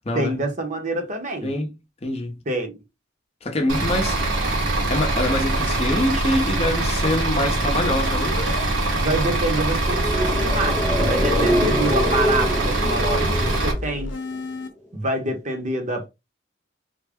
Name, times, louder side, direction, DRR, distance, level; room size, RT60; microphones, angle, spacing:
voice 1, 0.1-1.5 2.5-2.8 8.9-14.1 14.9-16.1, right 1 dB, 40° right, 0.8 m, -26 dB
voice 2, 2.0-2.4 3.4-4.5 4.9-8.4, left 1 dB, 30° left, 0.7 m, -25 dB
Bus / Idling, 3.7-13.7, right 2 dB, 75° right, 1.2 m, -23 dB
sound 1, 7.9-8.7 9.6-12.1 13.0-14.7, left 2 dB, 70° left, 0.8 m, -33 dB
sound 2, 9.8-14.4 14.7-14.8, equal, 5° right, 0.4 m, -25 dB
3.6 x 2.1 x 3.5 m
head